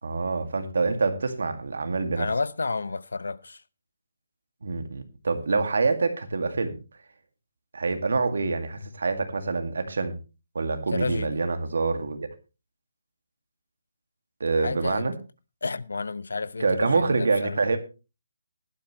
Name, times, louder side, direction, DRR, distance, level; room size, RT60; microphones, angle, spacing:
voice 1, 0.0-2.3 4.6-6.8 7.7-10.2 10.5-12.3 14.4-15.1 16.6-17.8, right 4 dB, 60° right, 2.1 m, -26 dB
voice 2, 2.2-3.6 10.9-11.4 14.5-15.0 15.6-17.6, left 3 dB, 85° left, 0.8 m, -31 dB
15.5 x 12.0 x 3.1 m
hypercardioid pair, 180°, 0 cm